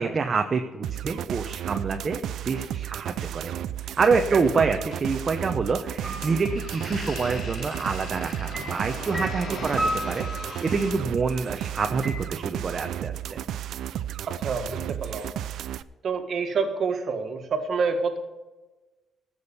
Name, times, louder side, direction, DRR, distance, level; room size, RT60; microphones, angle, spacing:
voice 1, 0.0-3.5 4.0-10.3 10.6-13.4, right 4 dB, 40° right, 5 dB, 0.9 m, -27 dB
sound 1, 0.8-15.8, right 11 dB, 75° right, 0.4 m, -33 dB
sound 2, 4.8-11.0, left 3 dB, 75° left, 4.3 m, -40 dB
sound 3, 6.0-6.8 8.5-10.9 12.0-12.2, right 1 dB, 5° right, 3.0 m, -33 dB
voice 2, 9.5-9.8 14.3-15.3 16.0-18.2, right 5 dB, 55° right, 5 dB, 1.7 m, -28 dB
14.0 x 6.4 x 7.1 m, 1.2 s
cardioid pair, 90°, 0 cm